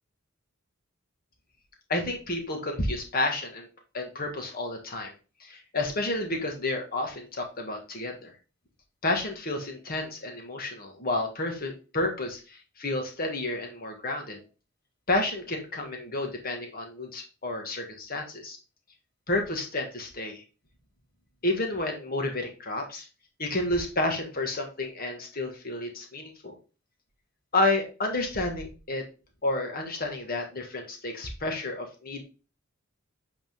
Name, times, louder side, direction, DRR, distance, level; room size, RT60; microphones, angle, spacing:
voice 1, 1.9-3.7 3.9-5.1 5.4-8.3 9.0-14.4 15.1-18.6 19.3-20.4 21.4-23.1 23.4-26.6 27.5-29.0 29.4-32.2, left 2 dB, 45° left, 2 dB, 1.8 m, -30 dB
8.2 x 4.3 x 3.6 m, 0.33 s
head